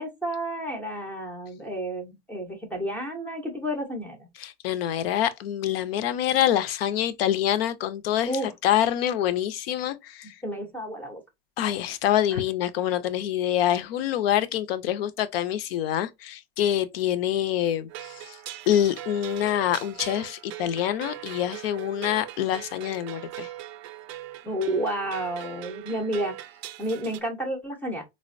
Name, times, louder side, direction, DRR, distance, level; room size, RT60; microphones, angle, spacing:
voice 1, 0.0-4.3 8.3-8.5 10.4-11.2 12.3-12.4 24.4-26.5 26.8-28.0, right 1 dB, 5° left, 0.5 m, -31 dB
voice 2, 4.4-8.3 8.6-10.2 11.6-17.9 18.7-23.5, left 11 dB, 65° left, 0.6 m, -26 dB
sound 1, 17.9-27.2, right 13 dB, 45° right, 0.4 m, -40 dB
3.8 x 2.1 x 2.4 m
supercardioid pair, 140°, 32 cm